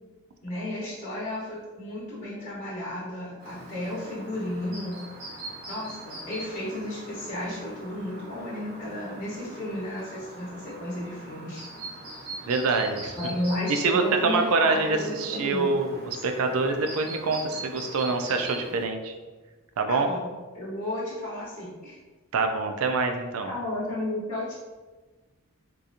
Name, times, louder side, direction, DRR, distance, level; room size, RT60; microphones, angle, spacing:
voice 1, 0.4-5.0 5.7-11.6 13.2-15.7 19.9-20.3 20.5-22.0 23.4-24.5, left 1 dB, 30° left, -9 dB, 1.0 m, -33 dB
Chirp tweet, 3.4-18.9, right 2 dB, 45° right, 0.8 m, -42 dB
voice 2, 12.5-13.2 13.7-19.1 19.8-20.1 22.3-23.5, right 4 dB, 70° right, 5 dB, 0.4 m, -25 dB
3.8 x 2.8 x 2.5 m, 1.3 s
head